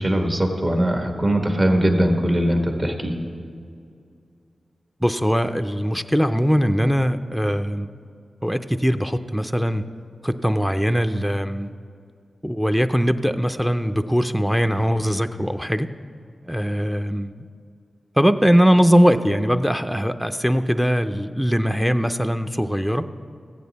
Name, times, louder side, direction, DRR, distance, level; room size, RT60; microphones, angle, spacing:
voice 1, 0.0-3.2, right 1 dB, 40° right, 3 dB, 1.4 m, -21 dB
voice 2, 5.0-7.9 8.4-9.8 10.2-11.7 12.4-15.9 16.4-17.3 18.2-23.0, equal, ahead, 8 dB, 0.4 m, -21 dB
14.5 x 8.4 x 4.1 m, 2.3 s
cardioid pair, 50°, 0 cm